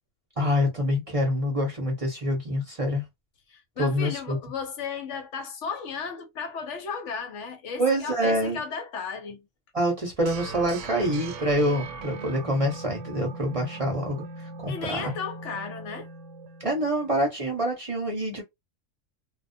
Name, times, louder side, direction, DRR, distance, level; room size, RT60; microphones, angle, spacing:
voice 1, 0.4-3.0 3.8-4.4 7.8-8.6 9.7-14.2 14.6-15.1 16.6-18.4, equal, 30° right, 0.7 m, -26 dB
voice 2, 3.5-9.4 14.7-16.1, left 5 dB, 70° left, 0.9 m, -34 dB
sound 1, 10.2-17.2, right 3 dB, 70° right, 0.9 m, -40 dB
2.3 x 2.1 x 2.5 m
omnidirectional pair, 1.4 m